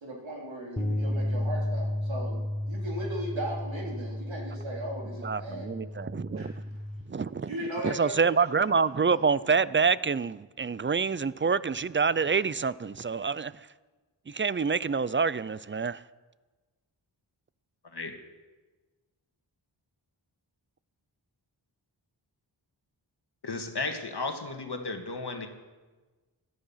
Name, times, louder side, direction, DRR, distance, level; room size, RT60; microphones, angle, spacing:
voice 1, 0.0-2.4 2.7-5.9 6.4-6.5 7.5-8.2, right 1 dB, 85° right, 3.6 m, -37 dB
sound 1, 0.8-7.0, left 1 dB, 10° left, 0.9 m, -33 dB
voice 2, 5.2-6.5 7.1-7.5 7.8-13.7 14.3-16.0, right 5 dB, 30° right, 0.4 m, -27 dB
voice 3, 23.4-25.5, left 3 dB, 60° left, 1.8 m, -34 dB
17.5 x 11.5 x 5.7 m
wide cardioid pair, 80°, 45 cm